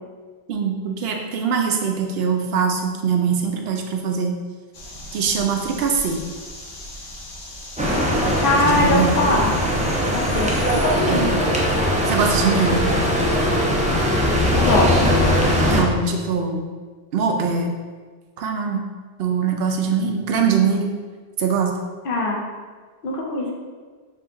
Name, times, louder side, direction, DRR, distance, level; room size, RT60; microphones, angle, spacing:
voice 1, 0.5-4.4 5.1-6.2 8.6-9.2 11.1-11.3 12.1-12.9 15.7-16.7 17.1-17.8 18.4-18.8 19.2-20.9 21.4-21.8, right 5 dB, 75° right, 3 dB, 0.8 m, -22 dB
sound 1, 4.7-10.8, left 1 dB, 90° left, 1.1 m, -38 dB
sound 2, 7.8-15.8, equal, 10° right, 0.4 m, -20 dB
voice 2, 8.4-9.5 10.1-11.3 14.6-15.1 22.0-22.4 23.0-23.5, left 2 dB, 60° left, -1 dB, 0.9 m, -21 dB
4.3 x 2.6 x 3.6 m, 1.5 s
omnidirectional pair, 1.1 m